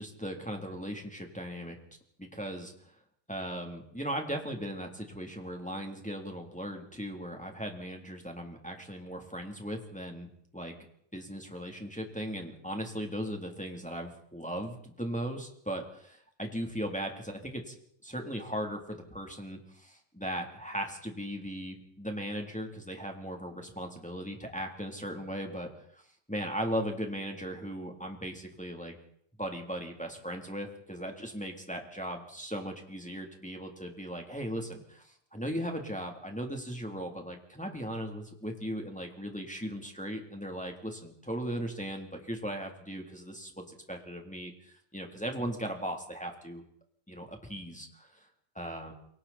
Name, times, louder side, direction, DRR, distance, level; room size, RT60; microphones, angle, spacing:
voice 1, 0.0-1.8 2.2-2.7 3.3-10.8 11.1-17.7 18.0-26.0 26.3-29.0 29.4-46.6 47.1-48.1 48.5-48.9, equal, ahead, 2 dB, 2.8 m, -38 dB
29.0 x 23.5 x 4.4 m, 0.65 s
omnidirectional pair, 4.0 m